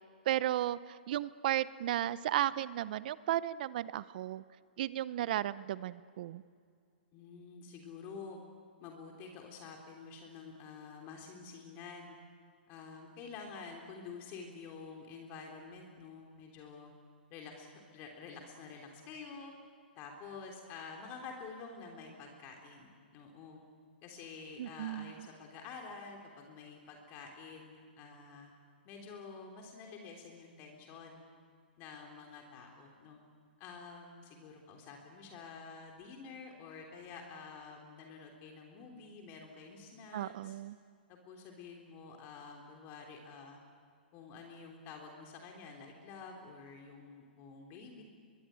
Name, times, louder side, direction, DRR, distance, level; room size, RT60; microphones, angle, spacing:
voice 1, 0.3-4.4 4.8-6.4 24.6-25.1 40.1-40.8, right 13 dB, 55° right, 17 dB, 0.7 m, -34 dB
voice 2, 7.1-8.4 8.8-12.2 12.7-16.9 17.3-17.7 17.9-19.5 19.9-23.6 24.0-28.5 28.8-31.2 31.8-33.2 33.6-40.5 41.1-43.6 44.1-48.0, left 5 dB, 35° left, 2 dB, 3.3 m, -49 dB
24.0 x 22.5 x 8.9 m, 2.2 s
hypercardioid pair, 130°, 6 cm